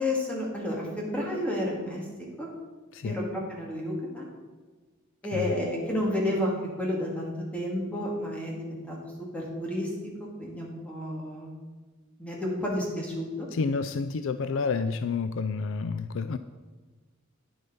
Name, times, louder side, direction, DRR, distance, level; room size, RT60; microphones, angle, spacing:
voice 1, 0.0-2.0 2.4-2.5 3.0-4.3 5.2-9.0 9.3-9.9 10.2-11.5 12.2-13.5, left 1 dB, 5° left, -3 dB, 2.3 m, -31 dB
voice 2, 13.5-16.4, left 4 dB, 70° left, 11 dB, 0.4 m, -29 dB
9.7 x 7.6 x 5.5 m, 1.3 s
head